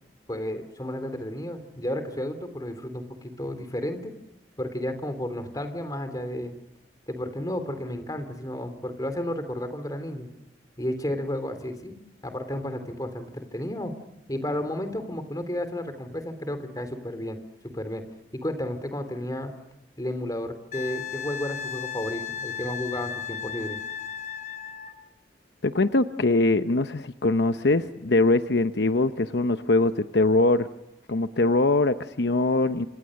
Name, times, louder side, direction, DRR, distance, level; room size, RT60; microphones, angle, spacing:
voice 1, 0.3-4.1 4.6-6.5 7.1-10.3 10.8-13.9 14.3-17.4 17.6-18.0 18.3-19.5 20.0-23.8, left 1 dB, 20° left, 8 dB, 3.3 m, -32 dB
Wind instrument woodwind instrument, 20.7-25.0 27.6-27.8, left 8 dB, 50° left, 3.0 m, -35 dB
voice 2, 25.6-30.7 31.1-32.9, left 2 dB, 70° left, 10 dB, 0.9 m, -22 dB
28.0 x 27.0 x 6.6 m, 0.94 s
head